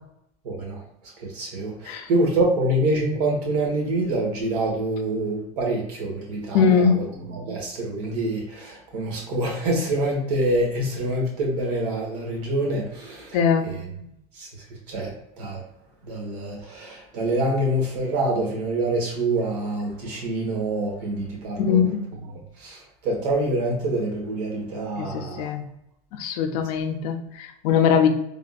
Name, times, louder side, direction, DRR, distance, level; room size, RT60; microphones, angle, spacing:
voice 1, 0.4-0.8 1.2-7.0 7.3-13.4 13.6-13.8 14.3-14.5 14.9-15.1 15.4-15.6 16.1-21.8 22.6-25.5, right 1 dB, 80° right, -1 dB, 1.2 m, -26 dB
voice 2, 6.5-7.1 13.3-13.7 21.6-22.1 25.0-25.6 26.1-28.1, left 7 dB, 70° left, 6 dB, 0.5 m, -21 dB
3.6 x 2.5 x 2.3 m, 0.79 s
supercardioid pair, 145°, 20 cm